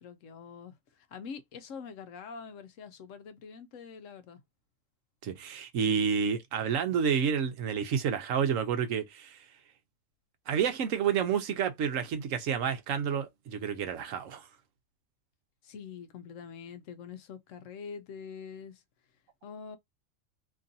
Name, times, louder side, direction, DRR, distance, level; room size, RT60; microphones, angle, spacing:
voice 1, 0.0-4.4 15.6-18.8 19.4-19.8, left 6 dB, 75° left, 1.0 m, -45 dB
voice 2, 5.2-9.4 10.5-14.5, right 7 dB, 75° right, 1.1 m, -29 dB
3.0 x 2.6 x 2.5 m
omnidirectional pair, 1.4 m